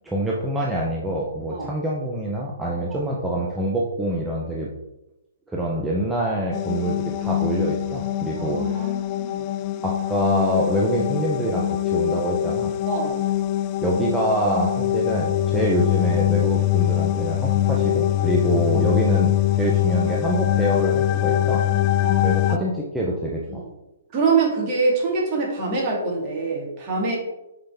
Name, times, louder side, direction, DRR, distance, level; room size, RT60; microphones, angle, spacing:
voice 1, 0.0-4.7 5.5-8.9 9.8-12.7 13.8-21.6 22.2-23.6, right 1 dB, 5° right, -4 dB, 0.7 m, -25 dB
sound 1, 6.5-22.6, left 13 dB, 30° left, 0.3 m, -23 dB
voice 2, 8.3-9.4 12.9-13.2 22.0-22.6 23.5-23.7 24.1-27.2, right 4 dB, 30° right, -3 dB, 2.0 m, -25 dB
5.8 x 5.2 x 3.5 m, 0.94 s
hypercardioid pair, 150°, 0 cm